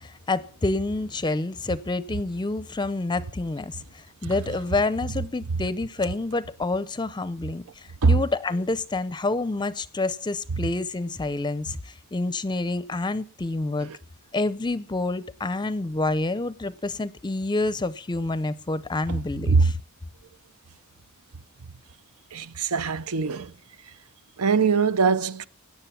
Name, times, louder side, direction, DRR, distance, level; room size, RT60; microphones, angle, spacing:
voice 1, 0.0-13.9 14.3-19.8, left 2 dB, 20° left, 0.6 m, -28 dB
voice 2, 22.3-23.5 24.4-25.5, right 4 dB, 80° right, 0.7 m, -22 dB
17.0 x 10.0 x 5.7 m
head